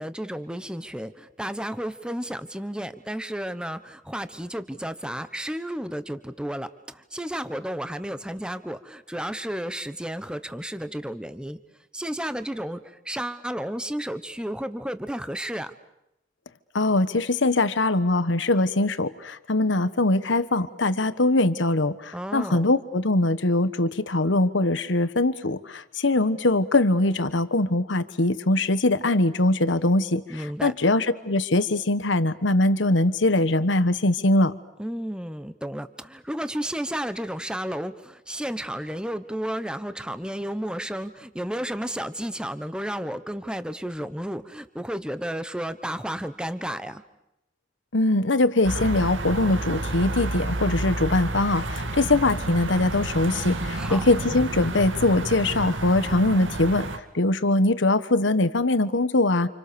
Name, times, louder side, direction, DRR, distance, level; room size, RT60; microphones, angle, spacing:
voice 1, 0.0-11.6 11.9-15.7 22.1-22.7 30.3-30.7 34.8-47.0 53.7-54.0, right 1 dB, 5° right, 11 dB, 1.1 m, -32 dB
voice 2, 16.7-34.5 47.9-56.9 57.1-59.5, left 2 dB, 75° left, 13 dB, 1.2 m, -22 dB
sound 1, 48.6-57.0, right 2 dB, 85° right, 2.3 m, -30 dB
30.0 x 28.5 x 7.0 m, 0.85 s
head